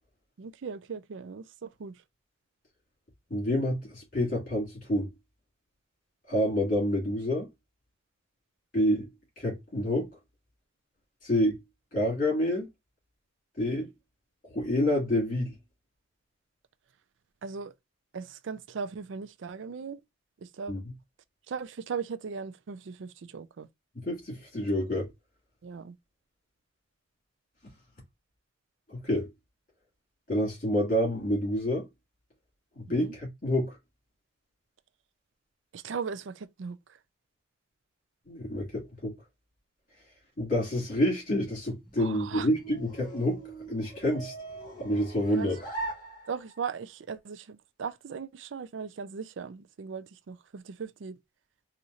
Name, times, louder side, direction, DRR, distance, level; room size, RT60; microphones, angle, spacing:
voice 1, 0.4-2.0 17.4-17.7 18.1-20.0 20.4-20.7 21.5-23.7 25.6-26.0 32.9-33.2 35.7-36.8 42.0-42.5 45.3-45.5 46.3-51.2, right 5 dB, 80° right, 0.4 m, -38 dB
voice 2, 3.3-5.1 6.3-7.5 8.7-9.1 9.4-10.1 11.2-11.6 11.9-12.7 13.6-13.9 14.5-15.6 20.7-20.8 24.0-25.1 28.9-29.3 30.3-31.8 32.7-33.8 38.3-39.1 40.4-43.4 43.7-44.3 44.8-45.6, left 1 dB, 45° left, 2.4 m, -28 dB
sound 1, 41.8-46.8, right 2 dB, 25° left, 1.6 m, -42 dB
4.2 x 2.5 x 2.6 m
head